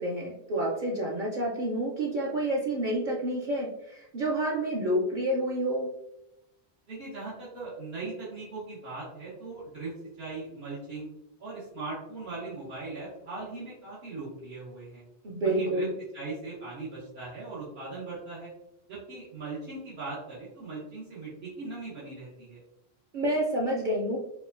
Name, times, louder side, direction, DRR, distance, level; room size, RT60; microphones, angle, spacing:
voice 1, 0.0-5.9 15.2-15.9 23.1-24.2, right 1 dB, 55° right, -4 dB, 0.7 m, -29 dB
voice 2, 6.9-11.1 11.4-15.0 15.4-15.9 16.1-18.5 18.9-22.6, right 3 dB, 75° right, -9 dB, 1.3 m, -39 dB
4.8 x 2.2 x 2.4 m, 0.84 s
omnidirectional pair, 1.1 m